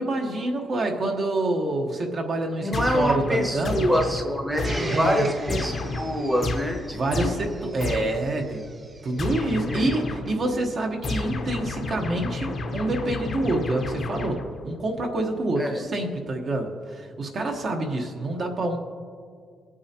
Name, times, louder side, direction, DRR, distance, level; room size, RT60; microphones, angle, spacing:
voice 1, 0.0-3.9 4.9-5.3 6.9-8.6 9.0-18.8, right 2 dB, 40° right, 2 dB, 1.1 m, -27 dB
voice 2, 2.6-7.3 8.2-8.4 9.6-9.9 15.6-15.9, equal, 5° right, 1 dB, 1.0 m, -26 dB
sound 1, 2.7-8.4 9.2-10.5 11.0-14.7, left 3 dB, 40° left, 1.0 m, -31 dB
Domestic sounds home sounds, 4.6-9.5 10.2-10.3, right 3 dB, 25° right, 0.6 m, -39 dB
24.5 x 8.6 x 2.9 m, 2.1 s
cardioid pair, 165°, 0 cm